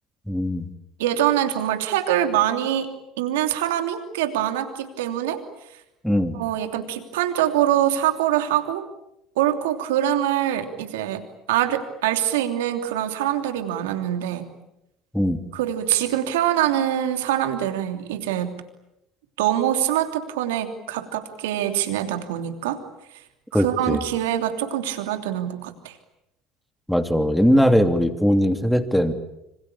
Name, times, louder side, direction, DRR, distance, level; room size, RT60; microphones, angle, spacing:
voice 1, 0.3-0.7 6.0-6.4 15.1-15.4 23.5-24.0 26.9-29.1, equal, ahead, 7 dB, 3.0 m, -20 dB
voice 2, 1.0-2.9 3.2-5.4 6.3-8.9 9.4-14.5 15.5-18.5 19.4-22.8 23.5-26.0, right 11 dB, 80° right, 7 dB, 3.0 m, -24 dB
26.5 x 26.0 x 8.7 m, 0.88 s
hypercardioid pair, 70°, 0 cm